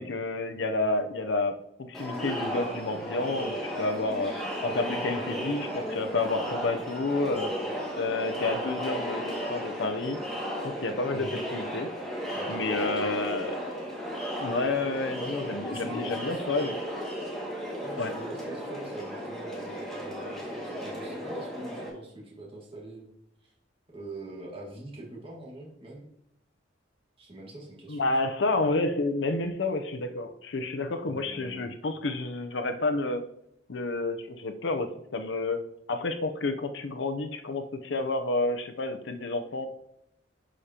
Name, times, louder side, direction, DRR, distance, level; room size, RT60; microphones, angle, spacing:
voice 1, 0.0-4.3 4.6-7.5 7.9-10.2 10.6-11.9 12.5-13.6 14.4-16.8 18.0-18.2 27.9-33.2 33.7-35.6 35.9-39.7, left 2 dB, 90° left, 7 dB, 0.6 m, -30 dB
Crowd, 1.9-21.9, equal, ahead, 2.0 m, -35 dB
voice 2, 12.3-13.1 15.6-16.8 17.8-23.1 23.4-23.5 23.9-26.0 27.2-28.3 31.0-31.7, right 1 dB, 30° right, -4 dB, 1.7 m, -43 dB
11.5 x 5.0 x 2.9 m, 0.76 s
head